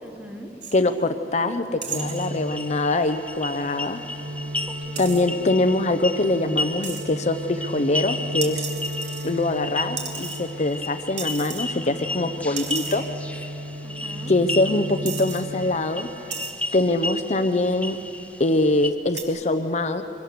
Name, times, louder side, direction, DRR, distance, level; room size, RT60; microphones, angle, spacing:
voice 1, 0.0-0.5 4.7-5.5 12.3-13.0 13.8-14.3, right 1 dB, 10° right, 4 dB, 1.6 m, -43 dB
sound 1, 0.6-0.8 1.8-2.3 5.0-5.2 6.8-7.1 8.4-9.6 10.0-10.8 11.2-11.7 12.0-12.1 12.6-13.0 13.9-14.0 14.6-14.7 15.1-15.5 16.3-16.5 17.4-17.7 19.2-19.3, right 6 dB, 80° right, 2.9 m, -34 dB
voice 2, 0.7-4.0 5.0-8.7 9.2-13.0 14.3-16.1 16.7-18.0 18.4-20.0, left 2 dB, 40° left, 8 dB, 0.7 m, -23 dB
sound 2, 1.9-16.5, right 1 dB, 45° right, 1.3 m, -36 dB
sound 3, 2.0-18.9, left 2 dB, 10° left, 0.7 m, -34 dB
24.0 x 24.0 x 6.8 m, 2.9 s
head